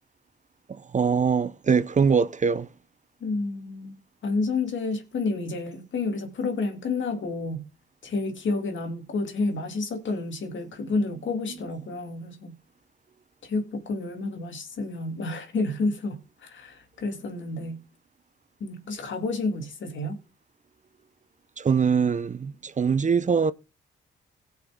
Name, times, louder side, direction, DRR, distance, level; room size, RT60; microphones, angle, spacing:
voice 1, 0.9-2.7 21.6-23.5, right 6 dB, 35° right, 0.6 m, -22 dB
voice 2, 3.2-4.0 4.2-7.7 8.0-12.5 13.4-17.8 18.6-20.2, left 3 dB, 65° left, 2.2 m, -30 dB
17.0 x 5.8 x 3.6 m
cardioid pair, 65°, 21 cm